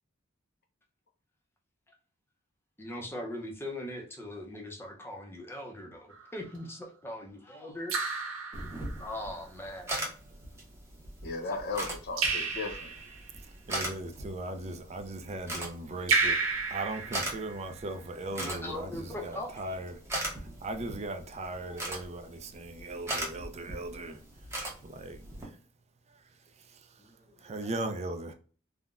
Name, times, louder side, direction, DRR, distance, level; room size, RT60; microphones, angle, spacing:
voice 1, 2.8-8.0 9.0-9.9 11.5-11.6 18.4-19.8 27.0-27.4, left 1 dB, 10° left, 0.6 m, -40 dB
Raindrop / Drip, 6.1-6.6 7.9-9.2 12.2-13.3 16.1-17.8, right 4 dB, 85° right, 0.8 m, -31 dB
sound 1, 8.5-25.4, right 1 dB, 15° right, 0.8 m, -40 dB
voice 2, 11.2-12.9, left 3 dB, 55° left, 0.6 m, -36 dB
voice 3, 13.7-20.0 20.6-24.2 24.8-25.6 26.6-27.0 27.4-28.3, right 2 dB, 35° right, 0.4 m, -38 dB
3.6 x 2.1 x 2.4 m
head